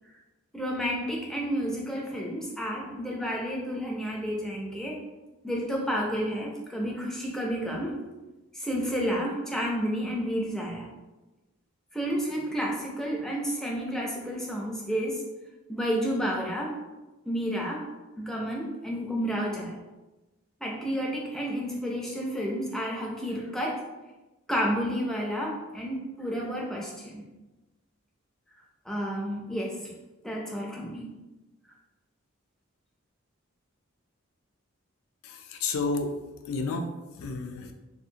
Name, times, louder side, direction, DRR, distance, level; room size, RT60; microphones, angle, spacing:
voice 1, 0.5-5.0 5.4-8.0 8.5-10.9 11.9-15.2 15.7-16.8 17.2-17.9 18.2-19.8 20.6-23.8 24.5-27.3 28.9-29.9 30.2-31.1, equal, ahead, -3 dB, 0.4 m, -31 dB
voice 2, 35.2-36.1 36.5-37.7, left 3 dB, 80° left, 6 dB, 0.3 m, -31 dB
2.6 x 2.4 x 2.7 m, 1.1 s
head